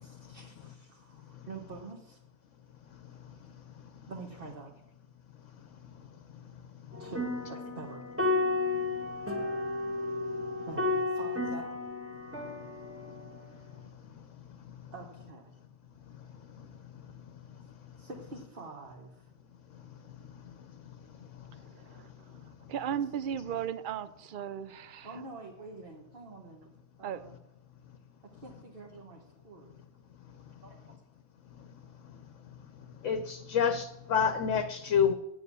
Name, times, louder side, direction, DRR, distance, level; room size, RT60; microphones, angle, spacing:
voice 1, 0.0-2.2 4.0-4.7 7.0-8.1 10.7-11.7 14.9-15.5 18.0-19.3 25.0-26.7 27.0-27.3 28.4-29.8 30.6-30.8, right 3 dB, 40° right, 1 dB, 1.4 m, -46 dB
sound 1, 6.9-13.5, left 2 dB, 10° right, 1.5 m, -33 dB
voice 2, 21.7-22.1 22.7-25.1 27.0-27.2, right 9 dB, 70° right, 15 dB, 0.4 m, -36 dB
voice 3, 33.0-35.1, left 7 dB, 65° left, 9 dB, 1.1 m, -27 dB
9.2 x 8.4 x 6.8 m, 0.87 s
omnidirectional pair, 1.5 m